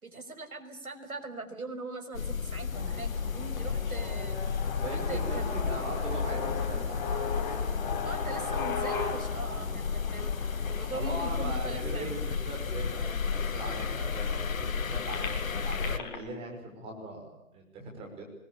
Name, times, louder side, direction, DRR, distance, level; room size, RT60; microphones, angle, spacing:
voice 1, 0.0-4.4 4.8-5.5 8.0-10.4 10.7-12.1, right 2 dB, 75° right, 6 dB, 5.8 m, -41 dB
sound 1, 2.1-16.0, left 6 dB, 65° left, 1.3 m, -32 dB
sound 2, 2.7-12.7 13.3-13.4 13.7-16.2, left 5 dB, 35° left, 5.9 m, -38 dB
voice 2, 4.8-8.5 9.3-9.8 10.9-18.2, right 2 dB, 15° right, 1 dB, 5.5 m, -41 dB
25.5 x 21.5 x 8.5 m, 0.80 s
figure-of-eight pair, 145°, 43 cm